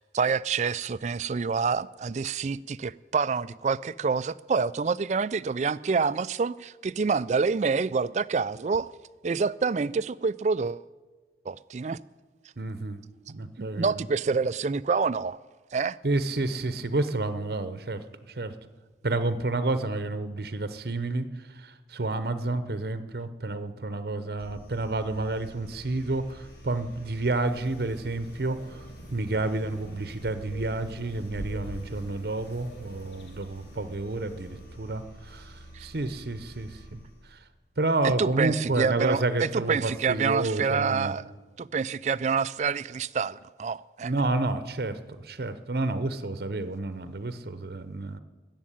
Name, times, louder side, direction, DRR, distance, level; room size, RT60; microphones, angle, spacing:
voice 1, 0.0-8.9 9.2-10.9 11.5-12.0 13.6-15.4 15.7-16.0 35.7-35.9 38.0-41.2 41.6-44.1, right 5 dB, 40° right, 0.3 m, -27 dB
voice 2, 12.6-13.0 13.3-13.9 16.0-18.0 18.3-18.5 19.0-37.0 37.3-37.4 37.8-41.1 44.0-48.2, right 2 dB, 60° right, 0.8 m, -30 dB
sound 1, 24.4-37.3, right 1 dB, 60° left, 4.5 m, -48 dB
sound 2, 27.4-34.7, equal, 75° left, 2.3 m, -45 dB
15.0 x 7.4 x 10.0 m
head